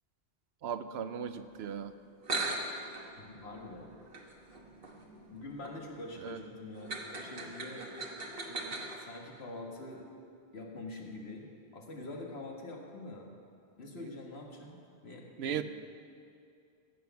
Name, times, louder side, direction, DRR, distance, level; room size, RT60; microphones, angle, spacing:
voice 1, 0.6-1.9 6.2-6.4 8.5-8.8 15.4-15.6, right 8 dB, 80° right, 11 dB, 0.9 m, -37 dB
sound 1, 1.9-2.0 2.2-9.0, right 2 dB, 60° right, 1.4 m, -40 dB
voice 2, 3.2-3.9 5.3-7.9 9.0-10.1 10.5-13.3 13.8-15.6, left 2 dB, 75° left, 0 dB, 1.8 m, -45 dB
14.0 x 8.0 x 5.8 m, 2.4 s
omnidirectional pair, 1.1 m